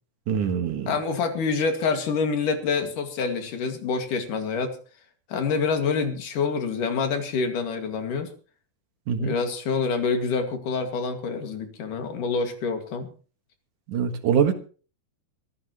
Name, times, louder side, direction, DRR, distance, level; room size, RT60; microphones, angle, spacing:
voice 1, 0.3-0.9 9.1-9.3 13.9-14.5, right 7 dB, 75° right, 3.0 m, -23 dB
voice 2, 0.9-4.8 5.3-8.3 9.2-13.1, left 5 dB, 75° left, 3.8 m, -26 dB
24.5 x 13.5 x 3.1 m
omnidirectional pair, 3.7 m